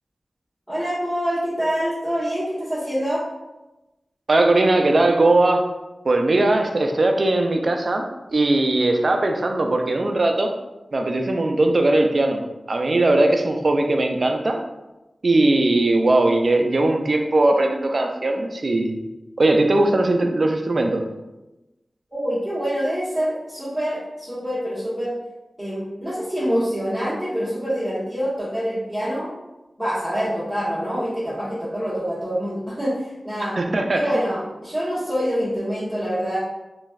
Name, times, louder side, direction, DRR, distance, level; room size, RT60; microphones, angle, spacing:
voice 1, 0.7-3.2 22.1-25.1 25.6-29.3 29.8-33.6 33.9-36.4, equal, ahead, -13 dB, 1.3 m, -25 dB
voice 2, 4.3-5.7 6.0-8.0 8.3-10.5 10.9-12.4 12.7-14.6 15.2-19.0 19.4-21.0 33.6-34.1, right 2 dB, 60° right, 3 dB, 0.3 m, -19 dB
3.0 x 2.5 x 2.3 m, 1.0 s
wide cardioid pair, 60°, 0 cm